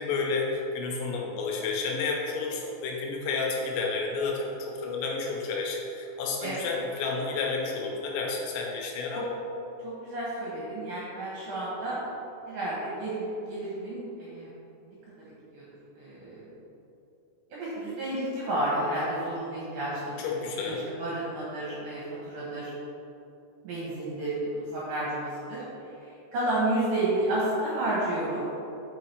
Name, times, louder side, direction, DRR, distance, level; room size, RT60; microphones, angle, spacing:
voice 1, 0.0-9.3 20.2-20.9, left 4 dB, 85° left, -1 dB, 3.5 m, -31 dB
voice 2, 6.4-6.7 9.1-9.2 9.8-12.0 12.5-14.5 14.8-14.9 15.5-15.6 16.0-16.5 17.5-22.7 23.6-28.5, right 1 dB, 60° right, -8 dB, 2.6 m, -31 dB
6.2 x 6.0 x 4.5 m, 2.9 s
omnidirectional pair, 5.8 m